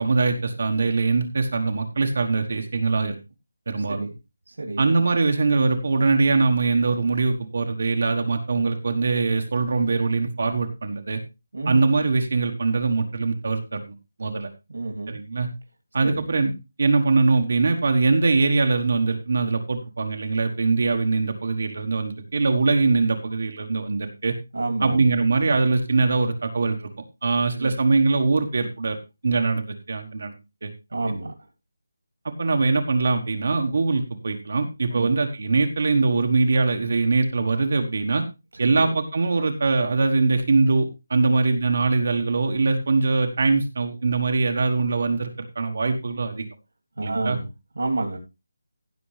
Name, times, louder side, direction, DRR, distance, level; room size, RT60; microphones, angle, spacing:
voice 1, 0.0-3.2 3.7-4.1 4.8-11.2 11.7-13.8 14.2-14.5 15.1-15.5 15.9-24.3 24.8-26.9 27.2-29.0 29.2-30.3 30.6-30.7 31.1-31.2 32.2-38.2 38.6-46.5 47.0-47.4, right 3 dB, 40° right, 4 dB, 1.3 m, -22 dB
voice 2, 4.5-5.0 11.5-11.8 14.3-14.4 14.7-15.2 16.0-16.2 24.5-25.0 27.5-27.7 30.9-31.3 34.9-35.1 38.7-38.9 41.2-41.3 47.0-47.4 47.8-48.2, right 2 dB, 85° right, 2 dB, 3.0 m, -29 dB
16.0 x 6.9 x 3.3 m, 0.26 s
figure-of-eight pair, 180°, 0 cm